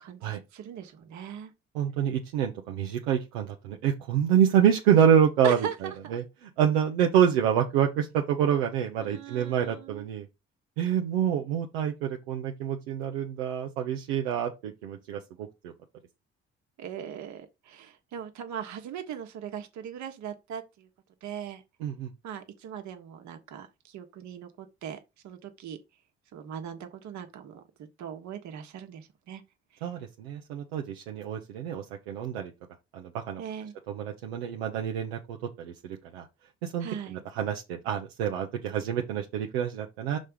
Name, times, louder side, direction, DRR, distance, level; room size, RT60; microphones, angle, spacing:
voice 1, 0.0-1.5 5.4-6.2 9.0-10.1 16.8-20.9 21.2-21.6 22.2-25.8 26.3-27.6 28.0-29.4 33.4-33.7 36.8-37.2, right 8 dB, 70° right, 1.4 m, -39 dB
voice 2, 1.7-10.3 10.8-15.2 15.6-15.7 21.8-22.1 29.8-32.5 32.9-33.4 33.9-36.3 36.6-40.2, right 9 dB, 85° right, 0.8 m, -27 dB
6.4 x 3.3 x 5.5 m
hypercardioid pair, 45°, 30 cm